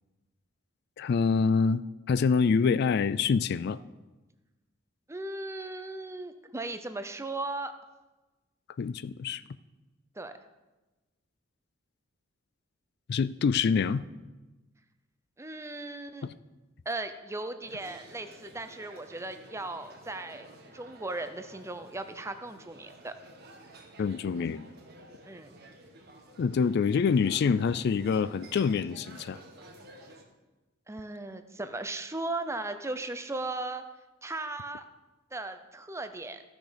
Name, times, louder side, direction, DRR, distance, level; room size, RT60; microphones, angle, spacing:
voice 1, 1.0-3.8 8.8-9.4 13.1-14.0 24.0-24.7 26.4-29.4, left 5 dB, 55° left, 16 dB, 0.3 m, -26 dB
voice 2, 5.1-7.7 10.2-10.3 15.4-16.3 16.9-20.5 20.7-23.1 25.2-25.5 30.9-33.8 34.2-34.8 35.3-36.4, right 2 dB, 15° right, 9 dB, 0.6 m, -37 dB
sound 1, 17.6-30.2, right 2 dB, 55° right, 1.5 m, -52 dB
14.5 x 6.3 x 5.1 m, 1.1 s
head